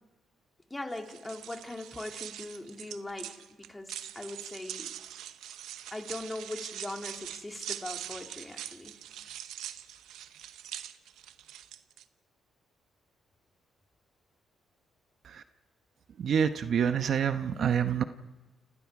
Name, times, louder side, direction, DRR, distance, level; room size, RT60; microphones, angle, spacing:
voice 1, 0.7-4.9 5.9-9.0, left 2 dB, 15° left, 3 dB, 2.8 m, -40 dB
sound 1, 0.9-12.0, right 11 dB, 85° right, 0.8 m, -43 dB
voice 2, 16.2-18.0, right 8 dB, 60° right, 9 dB, 0.9 m, -27 dB
29.5 x 27.0 x 4.9 m, 1.1 s
cardioid pair, 90°, 0 cm